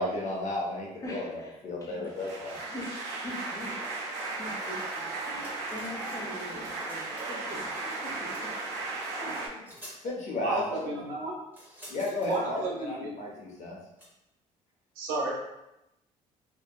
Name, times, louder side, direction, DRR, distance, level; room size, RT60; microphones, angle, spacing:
voice 1, 0.0-1.3 1.6-2.6 10.0-10.9 11.9-13.8, left 1 dB, 55° left, -2 dB, 0.8 m, -33 dB
voice 2, 1.0-2.0 2.6-8.4 8.7-8.9 9.2-10.0, equal, 20° left, -3 dB, 0.8 m, -43 dB
sound 1, 2.0-9.5, right 3 dB, 55° right, 0.9 m, -36 dB
sound 2, 5.3-6.2 6.4-7.4 8.3-8.5 9.3-9.4 9.6-10.0 11.5-12.4 14.0-14.1, equal, 15° right, 1.1 m, -49 dB
voice 3, 10.4-11.4 12.3-13.1 15.0-15.3, right 2 dB, 85° right, -3 dB, 0.7 m, -32 dB
2.7 x 2.2 x 2.2 m, 0.90 s
supercardioid pair, 80°, 15 cm